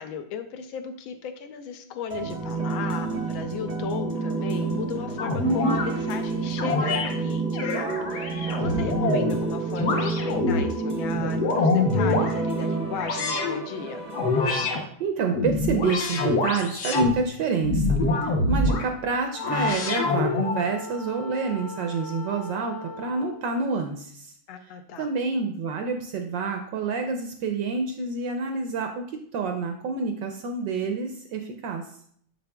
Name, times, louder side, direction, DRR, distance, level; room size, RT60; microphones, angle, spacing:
voice 1, 0.0-14.0 24.5-25.1, left 7 dB, 75° left, 7 dB, 1.3 m, -36 dB
sound 1, 2.1-14.7, right 3 dB, 45° right, 0.5 m, -29 dB
sound 2, 5.2-5.9 6.6-7.1 7.5-9.3 9.8-10.7 11.1-12.3 13.0-13.6 14.1-14.8 15.3-17.1 17.6-18.8 19.4-20.6, left 2 dB, 60° left, 1.2 m, -25 dB
voice 2, 14.7-24.3 25.0-29.0 29.3-31.8, right 4 dB, 75° right, 4 dB, 1.1 m, -28 dB
Wind instrument woodwind instrument, 19.3-23.5, left 3 dB, 40° left, 0.6 m, -39 dB
6.8 x 6.7 x 2.2 m, 0.62 s
omnidirectional pair, 2.4 m